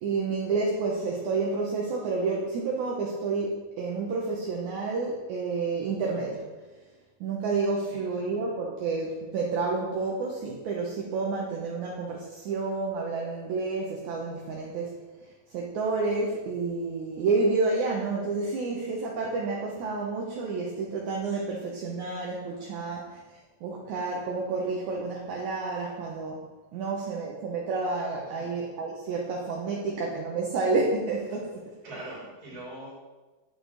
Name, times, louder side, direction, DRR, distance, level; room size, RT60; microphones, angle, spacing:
voice 1, 0.0-6.4 7.2-14.9 15.5-23.2 23.6-26.4 26.7-32.1, right 3 dB, 75° right, -2 dB, 1.9 m, -30 dB
voice 2, 7.8-8.3 26.7-26.8 28.3-28.5 31.8-33.0, right 1 dB, 30° right, -5 dB, 2.5 m, -43 dB
8.3 x 6.5 x 3.9 m, 1.2 s
omnidirectional pair, 4.3 m